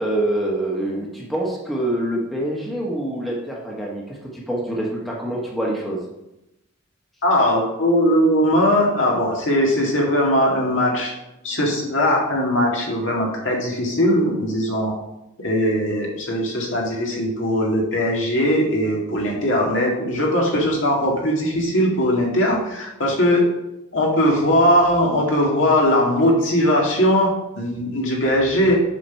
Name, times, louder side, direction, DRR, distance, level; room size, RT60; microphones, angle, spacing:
voice 1, 0.0-6.0, right 1 dB, ahead, -4 dB, 1.3 m, -25 dB
voice 2, 7.2-11.1 11.4-14.9 15.4-23.4 23.9-27.3 27.6-28.8, equal, 65° left, -2 dB, 2.0 m, -19 dB
7.3 x 4.1 x 5.8 m, 0.91 s
head